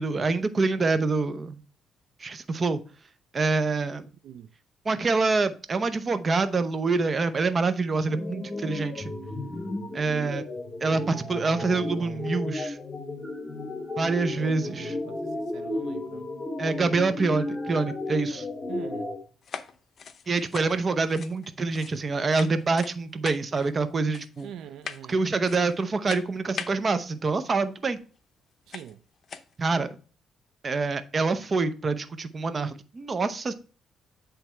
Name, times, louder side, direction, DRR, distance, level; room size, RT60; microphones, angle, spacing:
voice 1, 0.0-1.6 2.2-2.8 3.3-4.0 4.9-9.1 9.9-10.5 10.8-12.8 14.0-15.0 16.6-18.5 20.3-24.5 25.1-28.0 29.6-29.9 30.6-33.5, right 3 dB, 35° right, 0.7 m, -26 dB
sound 1, 8.1-19.2, left 2 dB, 25° left, 1.6 m, -34 dB
voice 2, 10.9-12.3 14.3-16.3 18.7-19.1 24.4-25.3 28.7-29.0, right 9 dB, 80° right, 0.4 m, -43 dB
sound 2, 19.4-22.1 22.3-22.9 23.2-23.7 24.1-24.5 24.8-25.2 25.4-25.8 26.1-26.8 28.0-28.1 28.7-28.9 29.2-29.5, left 6 dB, 50° left, 0.6 m, -40 dB
8.0 x 3.4 x 4.4 m
cardioid pair, 90°, 0 cm